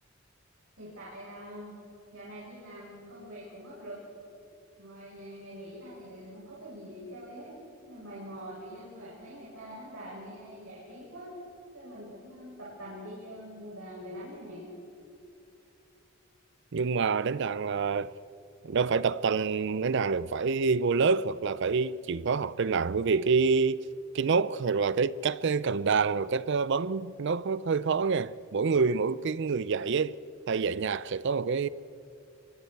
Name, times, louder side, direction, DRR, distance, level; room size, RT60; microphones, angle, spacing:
voice 1, 0.8-1.8 2.1-4.0 4.8-7.6 7.8-11.3 11.7-14.7, equal, 80° right, 7.5 m, -44 dB
voice 2, 16.7-18.1 18.6-23.9 24.1-30.2 30.5-31.7, right 5 dB, 60° right, 0.5 m, -27 dB
28.5 x 24.0 x 4.6 m
head